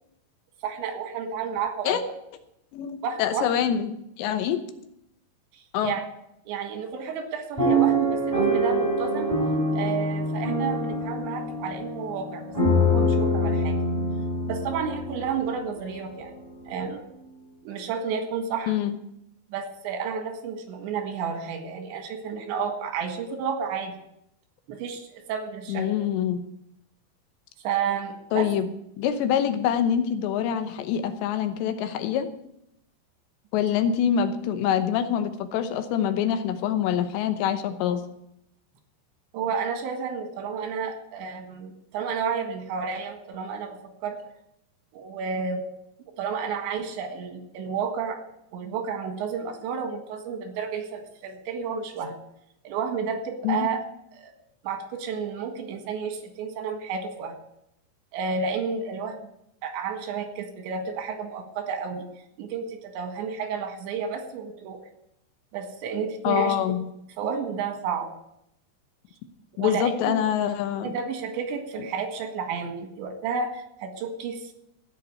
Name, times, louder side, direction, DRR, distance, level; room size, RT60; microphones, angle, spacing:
voice 1, 0.6-2.0 3.0-3.5 5.8-6.0 6.5-9.3 9.7-13.7 14.4-16.3 16.7-17.0 17.6-18.7 19.5-23.9 24.7-25.9 27.6-28.5 39.3-44.2 44.9-45.6 46.2-48.2 48.5-52.2 52.7-53.8 54.1-54.3 54.6-57.4 58.1-59.3 59.6-62.0 62.4-64.8 65.5-66.6 67.2-68.1 69.6-70.2 70.8-74.5, right 6 dB, 85° right, 5 dB, 4.1 m, -31 dB
voice 2, 2.7-4.6 5.7-6.0 18.7-19.0 25.7-26.4 28.3-28.7 29.0-32.3 33.5-38.0 53.4-53.7 66.2-66.8 69.6-71.0, left 9 dB, 85° left, 9 dB, 3.2 m, -25 dB
sound 1, 7.6-15.7 16.3-16.4 16.6-16.9, equal, 5° right, 3.6 m, -25 dB
16.0 x 5.4 x 9.5 m, 0.79 s
omnidirectional pair, 5.0 m